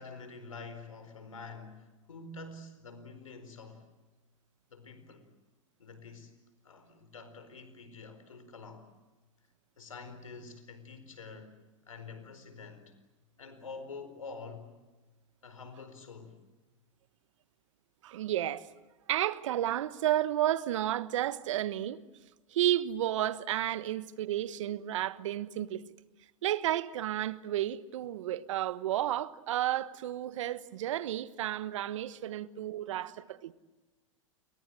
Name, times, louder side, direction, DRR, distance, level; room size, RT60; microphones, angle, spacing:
voice 1, 0.0-3.9 4.7-5.3 5.8-6.3 6.6-8.9 9.8-11.6 11.9-12.9 13.4-14.7 15.4-16.4 32.4-33.1, left 4 dB, 90° left, 4.5 m, -47 dB
voice 2, 18.0-18.7 19.1-22.0 22.5-25.8 26.4-33.5, right 12 dB, 70° right, 1.2 m, -32 dB
30.0 x 23.0 x 7.7 m
hypercardioid pair, 105°, 17 cm